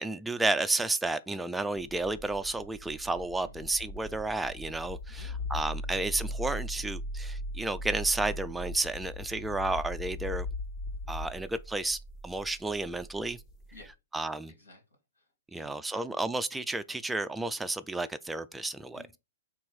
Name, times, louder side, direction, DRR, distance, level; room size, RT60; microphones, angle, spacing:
voice 1, 0.0-10.5 11.1-12.0 12.2-13.4 14.1-14.5 15.5-19.0, right 2 dB, 5° right, 0.3 m, -32 dB
sound 1, 1.8-13.9, left 1 dB, 30° left, 1.0 m, -39 dB
voice 2, 4.7-5.4 5.8-5.9 9.3-9.5 13.7-13.9 14.2-14.8 15.1-16.0 18.9-19.2, left 3 dB, 85° left, 2.3 m, -55 dB
3.6 x 3.0 x 4.7 m
hypercardioid pair, 115°, 0 cm